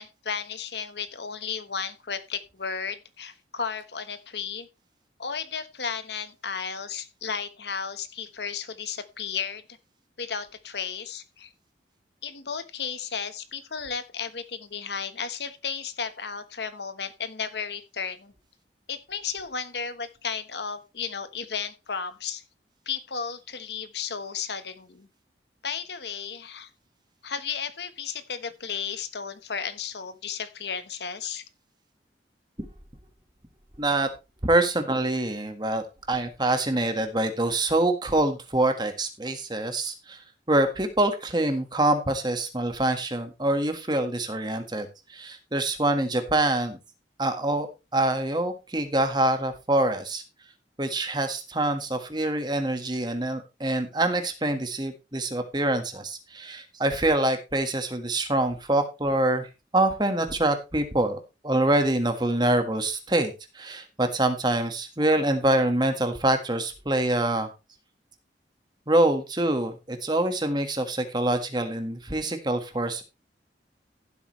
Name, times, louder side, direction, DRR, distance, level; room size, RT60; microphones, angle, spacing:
voice 1, 0.0-4.7 5.2-9.6 10.2-11.5 12.2-18.3 18.9-22.4 22.8-25.1 25.6-26.7 27.2-31.4, left 6 dB, 70° left, 11 dB, 1.2 m, -34 dB
voice 2, 33.8-34.1 34.4-35.8 36.1-40.2 40.5-46.8 47.2-50.2 50.8-59.5 59.7-67.5 68.9-73.0, right 1 dB, 25° right, 7 dB, 1.6 m, -25 dB
15.0 x 8.1 x 3.2 m, 0.28 s
head